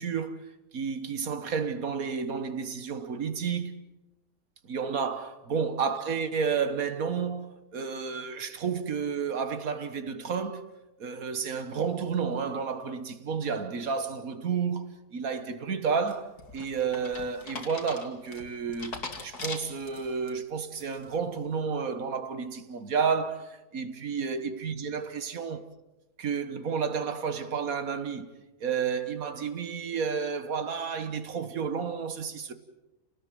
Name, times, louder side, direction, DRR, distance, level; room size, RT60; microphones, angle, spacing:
voice 1, 0.0-3.8 4.6-10.7 11.0-25.7 26.2-28.3 28.6-32.5, right 6 dB, 65° right, 1.7 m, -31 dB
sound 1, 16.1-20.3 20.7-21.2, left 3 dB, 80° left, 2.9 m, -41 dB
28.5 x 19.0 x 7.7 m
omnidirectional pair, 1.6 m